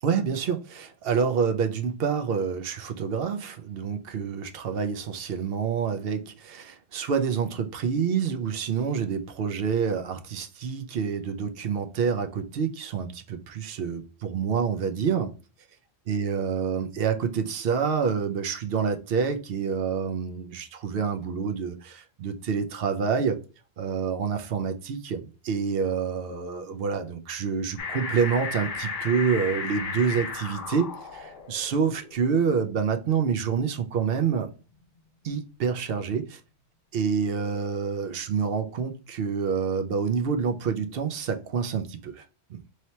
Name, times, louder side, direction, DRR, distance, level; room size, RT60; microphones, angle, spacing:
voice 1, 0.0-15.3 16.1-23.4 23.8-34.5 35.2-36.4 36.9-42.2 42.5-42.6, right 6 dB, 60° right, 0.8 m, -27 dB
sound 1, 27.8-33.9 34.5-34.6, left 4 dB, 50° left, 0.8 m, -35 dB
3.3 x 2.8 x 4.2 m
omnidirectional pair, 1.2 m